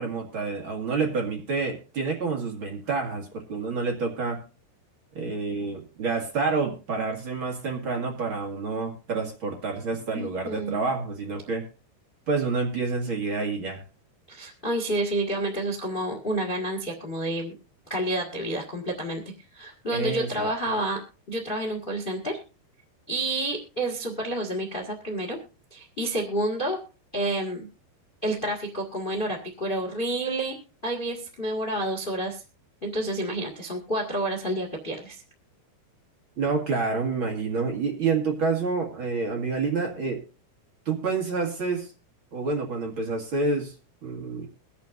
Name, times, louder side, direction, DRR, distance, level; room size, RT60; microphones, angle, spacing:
voice 1, 0.0-4.4 5.1-11.6 12.3-13.8 19.9-20.5 36.4-40.2 40.9-41.9 42.3-43.7 44.0-44.5, right 4 dB, 40° right, 1 dB, 2.1 m, -28 dB
voice 2, 10.1-10.8 14.3-17.5 17.9-19.2 19.5-21.0 21.3-22.4 23.1-25.4 25.7-26.8 27.1-27.7 28.2-30.5 30.8-32.4 32.8-35.2, right 1 dB, 60° left, 2 dB, 0.5 m, -29 dB
23.0 x 8.5 x 2.6 m, 0.32 s
omnidirectional pair, 4.5 m